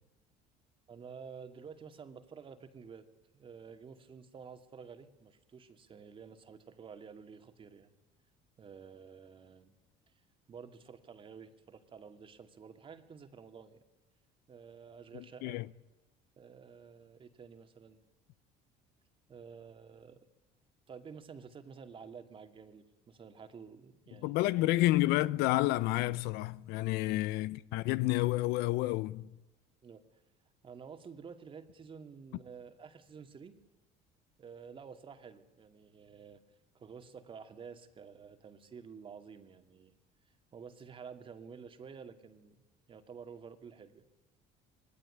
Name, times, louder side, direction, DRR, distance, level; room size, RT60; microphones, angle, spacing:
voice 1, 0.9-7.9 8.6-9.8 10.5-13.8 14.5-15.6 16.4-18.0 19.3-20.3 20.9-24.9 27.0-27.2 29.8-30.0 30.6-33.6 34.4-36.4 36.7-40.0 40.5-42.6 42.9-44.1, right 6 dB, 30° right, 2.4 m, -51 dB
voice 2, 15.1-15.7 24.2-29.3, left 18 dB, 80° left, 0.9 m, -30 dB
26.0 x 19.5 x 9.9 m
cardioid pair, 125°, 16 cm